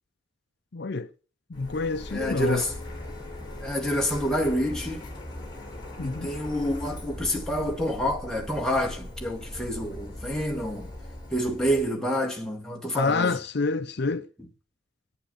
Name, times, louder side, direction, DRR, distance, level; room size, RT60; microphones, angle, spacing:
voice 1, 0.7-1.1 1.5-2.6 6.0-6.3 12.9-14.3, left 4 dB, 55° left, 0.6 m, -27 dB
Printer, 1.5-11.9, left 1 dB, 20° left, 3.9 m, -40 dB
voice 2, 2.1-2.7 3.6-5.1 6.0-10.9 11.3-13.4, equal, 5° left, 1.9 m, -28 dB
8.8 x 8.7 x 7.8 m
head